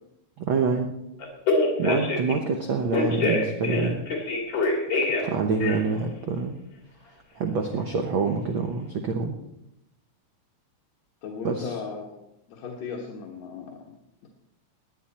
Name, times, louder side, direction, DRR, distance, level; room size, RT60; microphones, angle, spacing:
voice 1, 0.4-1.0 1.8-4.1 5.2-6.6 7.3-9.3 11.4-11.7, right 4 dB, 70° right, 4 dB, 1.2 m, -26 dB
Telephone, 1.2-2.3 2.9-5.3 5.6-6.0, left 2 dB, 40° left, 3.3 m, -25 dB
voice 2, 11.2-13.8 14.2-14.3, left 5 dB, 65° left, -1 dB, 2.5 m, -37 dB
19.0 x 10.0 x 4.3 m, 0.85 s
omnidirectional pair, 3.6 m